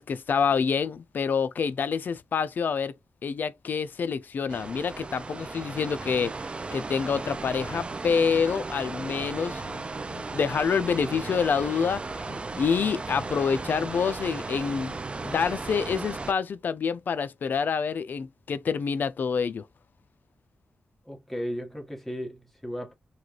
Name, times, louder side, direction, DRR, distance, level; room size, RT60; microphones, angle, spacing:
voice 1, 0.0-2.9 3.2-19.7, left 6 dB, 65° left, 0.4 m, -27 dB
sound 1, 4.5-16.3, right 3 dB, 30° right, 0.3 m, -36 dB
voice 2, 21.0-22.9, equal, 5° left, 1.1 m, -35 dB
3.1 x 2.3 x 2.4 m
cardioid pair, 85°, 3 cm